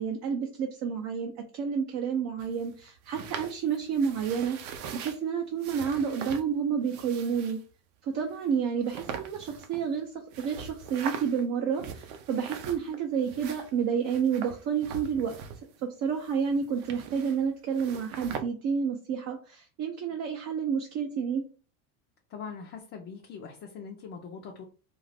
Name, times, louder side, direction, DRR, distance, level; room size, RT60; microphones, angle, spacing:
voice 1, 0.0-4.6 4.9-7.6 8.1-10.1 10.4-15.4 15.8-21.4, right 7 dB, 40° right, 2 dB, 0.6 m, -30 dB
sound 1, 2.4-5.2 5.6-6.5 6.8-7.6 8.3-8.4 8.8-10.0 10.3-11.4 11.7-13.0 13.2-15.8 16.1-17.5 17.7-18.4, right 7 dB, 85° right, 0.7 m, -41 dB
voice 2, 22.3-24.6, left 6 dB, 35° left, 0 dB, 0.5 m, -42 dB
2.6 x 2.4 x 3.2 m, 0.36 s
supercardioid pair, 130°, 44 cm